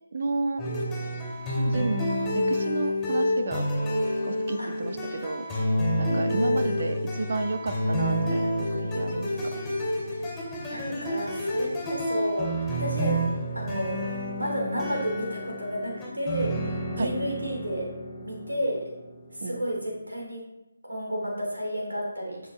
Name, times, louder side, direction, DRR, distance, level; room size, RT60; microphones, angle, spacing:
voice 1, 0.1-0.6 1.7-2.1 2.3-3.7 4.2-5.5 6.0-9.5 17.0-17.1 19.4-19.7, right 3 dB, 45° right, 8 dB, 0.7 m, -31 dB
sound 1, 0.6-20.0, equal, 10° left, 2.5 m, -29 dB
voice 2, 1.5-1.9 4.6-4.7 6.0-6.6 10.1-10.4 10.7-13.2 13.5-14.1 14.4-17.9 18.2-18.8 19.3-20.4 20.9-22.5, equal, 75° right, -2 dB, 3.1 m, -32 dB
13.0 x 6.2 x 3.2 m, 0.96 s
figure-of-eight pair, 150°, 0 cm